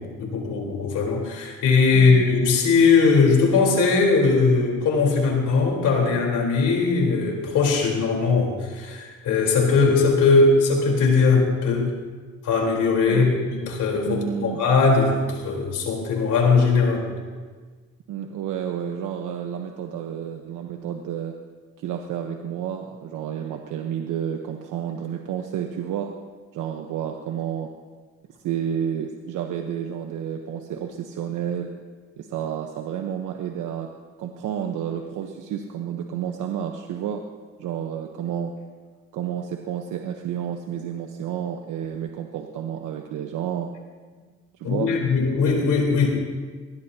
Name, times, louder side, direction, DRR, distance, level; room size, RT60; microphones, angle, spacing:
voice 1, 0.0-11.9 12.4-13.3 13.6-17.1 44.6-46.2, left 4 dB, 80° left, 0 dB, 4.1 m, -20 dB
voice 2, 1.9-2.3 13.1-13.3 14.1-14.6 18.1-21.3 21.8-26.1 26.5-27.7 28.4-31.7 32.2-33.9 34.2-37.2 37.6-38.5 39.1-43.7 44.6-44.9, right 9 dB, 90° right, 3 dB, 1.1 m, -30 dB
21.0 x 19.0 x 2.9 m, 1.4 s
cardioid pair, 90°, 30 cm